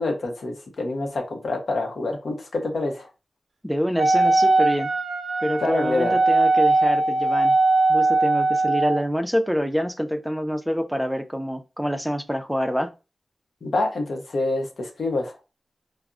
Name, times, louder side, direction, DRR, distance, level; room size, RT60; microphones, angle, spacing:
voice 1, 0.0-3.1 5.6-6.2 13.6-15.4, left 2 dB, 80° left, 0.6 m, -26 dB
voice 2, 3.6-4.9 5.4-7.6 7.9-12.9, equal, ahead, 0.4 m, -26 dB
Wind instrument woodwind instrument, 4.0-9.0, right 2 dB, 90° right, 0.4 m, -20 dB
2.3 x 2.0 x 3.6 m
cardioid pair, 40°, 0 cm